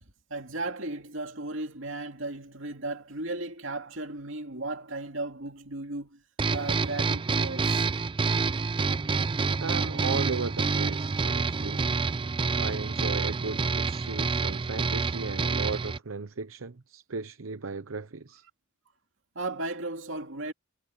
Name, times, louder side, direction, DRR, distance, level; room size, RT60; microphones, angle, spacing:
voice 1, 0.0-6.2 6.5-7.9 19.3-20.5, right 2 dB, 65° right, 2.8 m, -35 dB
sound 1, 6.4-16.0, right 4 dB, 25° right, 0.4 m, -28 dB
voice 2, 9.6-11.9 12.5-18.4, right 4 dB, 85° right, 0.8 m, -36 dB
head